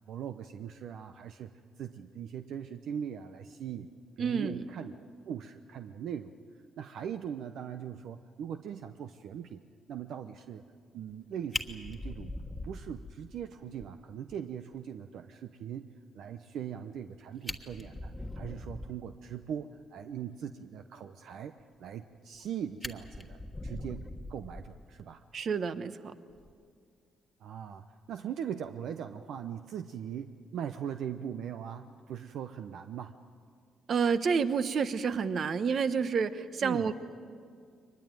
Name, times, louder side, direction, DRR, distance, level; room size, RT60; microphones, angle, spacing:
voice 1, 0.1-3.9 4.2-6.3 6.8-9.6 9.9-10.6 10.9-12.4 12.6-15.9 16.1-21.5 21.8-25.2 27.4-33.2 36.6-36.9, right 8 dB, 75° right, 8 dB, 0.7 m, -40 dB
voice 2, 4.2-4.6 25.3-25.9 33.9-36.9, right 6 dB, 55° right, 11 dB, 1.1 m, -29 dB
Fire, 11.1-11.2 11.5-13.5 13.8-13.9 14.3-14.4 14.7-14.8 17.0-17.1 17.4-19.1 21.9-22.4 22.8-25.0 26.3-26.5, left 1 dB, 15° left, 1.4 m, -41 dB
23.0 x 20.5 x 9.1 m, 2.1 s
cardioid pair, 90°, 0 cm